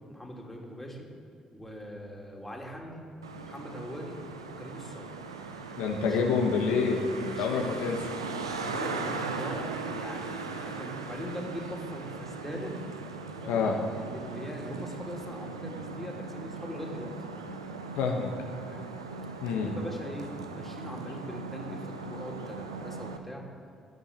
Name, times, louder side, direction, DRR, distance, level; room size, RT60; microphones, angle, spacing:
voice 1, 0.1-1.1 1.5-3.0 3.4-4.2 4.6-5.1 5.8-6.2 7.2-7.6 8.4-9.6 9.9-12.7 13.4-17.1 18.7-18.9 19.4-23.4, equal, 10° left, -1 dB, 3.0 m, -41 dB
Traffic noise roadway noise, 3.2-23.2, right 4 dB, 85° right, 0.6 m, -39 dB
voice 2, 5.8-8.0 13.5-13.7 18.0-18.3 19.4-19.7, left 5 dB, 70° left, 1 dB, 1.1 m, -27 dB
13.5 x 8.4 x 7.4 m, 2.3 s
figure-of-eight pair, 45°, 3 cm